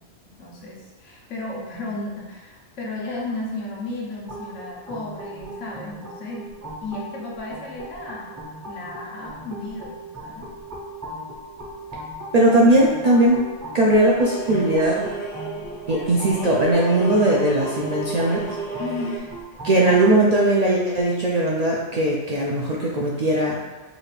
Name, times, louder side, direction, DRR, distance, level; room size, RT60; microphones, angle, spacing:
voice 1, 0.4-6.5 6.8-8.4 8.7-10.5 18.8-19.3, left 2 dB, 90° left, -3 dB, 1.2 m, -34 dB
sound 1, 4.3-20.1, right 1 dB, 20° right, 0.6 m, -38 dB
voice 2, 12.3-13.4 13.7-15.1 15.9-18.4 19.6-23.6, right 1 dB, 60° right, -4 dB, 0.4 m, -19 dB
sound 2, 14.0-19.2, right 2 dB, 70° left, 0.9 m, -33 dB
5.0 x 2.5 x 3.2 m, 1.3 s
omnidirectional pair, 1.2 m